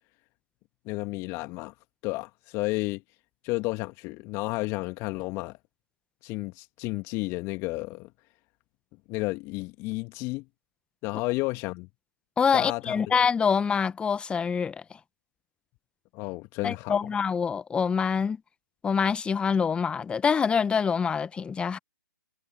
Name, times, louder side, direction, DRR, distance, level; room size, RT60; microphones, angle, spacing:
voice 1, 0.9-1.7 2.0-3.0 3.4-5.6 6.2-8.1 9.1-10.4 11.0-11.9 12.5-13.0 16.1-17.0, left 23 dB, 25° left, 1.8 m, -32 dB
voice 2, 12.4-14.8 16.6-18.4 18.8-21.8, left 6 dB, 10° left, 1.2 m, -25 dB
figure-of-eight pair, 130°, 11 cm